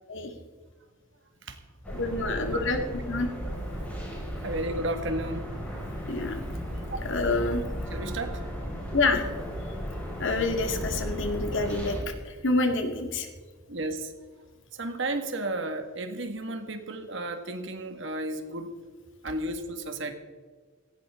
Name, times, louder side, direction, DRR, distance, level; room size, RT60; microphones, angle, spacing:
sound 1, 1.8-12.0, equal, 5° left, 5.9 m, -35 dB
voice 1, 1.9-3.3 6.1-6.4 7.0-7.6 8.9-9.2 10.2-12.0 12.2-13.3, left 2 dB, 60° left, 4 dB, 2.2 m, -27 dB
voice 2, 4.4-5.5 7.9-8.4 13.7-14.1 14.8-18.7 19.2-20.1, right 2 dB, 60° right, 6 dB, 1.9 m, -33 dB
18.0 x 16.5 x 3.8 m, 1.5 s
head